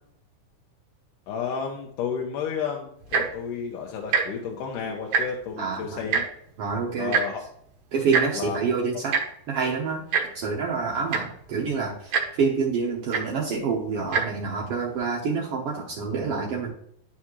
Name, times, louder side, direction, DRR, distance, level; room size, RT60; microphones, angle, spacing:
voice 1, 1.3-6.2 7.0-7.4 8.3-8.6, left 6 dB, 75° left, 1 dB, 2.2 m, -31 dB
Tick-tock, 3.0-3.4 4.0-4.2 4.5-4.7 5.0-5.5 6.1-6.2 7.1-7.2 8.1-8.3 9.1-9.2 10.1-10.2 10.8-10.9 11.1-11.4 12.1-12.2 13.1-13.2 14.0-14.2 14.9-15.0, right 6 dB, 70° right, 1.4 m, -23 dB
voice 2, 5.6-6.1 6.6-7.1 7.9-9.1 9.5-10.0 10.3-16.7, right 5 dB, 85° right, -2 dB, 1.3 m, -27 dB
11.5 x 4.8 x 3.1 m, 0.68 s
omnidirectional pair, 4.0 m